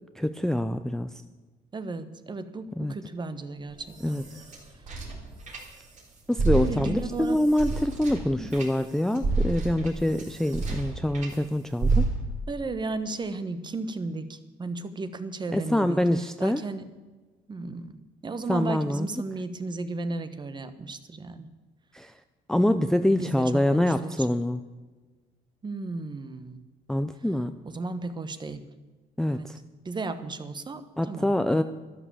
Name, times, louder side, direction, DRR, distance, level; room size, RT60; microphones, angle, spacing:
voice 1, 0.2-1.1 2.8-2.9 4.0-4.2 6.3-12.1 15.5-16.6 18.5-19.1 21.9-22.1 22.5-24.6 26.9-27.6 29.2-29.6 31.0-31.6, left 1 dB, 5° left, 10 dB, 0.5 m, -25 dB
voice 2, 1.7-4.2 6.5-7.4 8.4-8.5 12.5-16.0 16.4-16.9 17.5-18.0 18.2-21.5 23.2-24.3 25.6-26.6 27.6-28.6 29.3-29.5 29.8-31.6, right 3 dB, 25° right, 11 dB, 1.1 m, -34 dB
sound 1, 3.7-6.0 6.3-11.4 11.8-12.5, right 3 dB, 45° right, 3.5 m, -30 dB
12.0 x 11.5 x 7.2 m, 1.3 s
cardioid pair, 110°, 17 cm